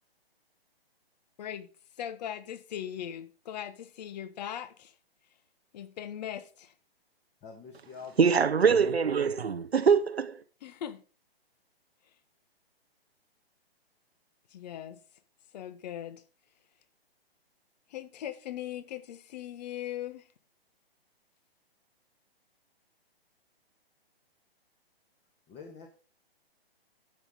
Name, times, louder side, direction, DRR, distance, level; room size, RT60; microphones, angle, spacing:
voice 1, 1.4-1.7 2.0-4.9 5.7-6.7 10.6-11.0 14.5-15.0 15.5-16.2 17.9-20.3, left 10 dB, 45° left, 1.2 m, -39 dB
voice 2, 7.4-8.5 25.5-25.9, left 5 dB, 20° left, 1.5 m, -46 dB
voice 3, 8.2-10.4, right 6 dB, 90° right, 0.8 m, -23 dB
11.0 x 7.5 x 3.7 m
hypercardioid pair, 130°, 30 cm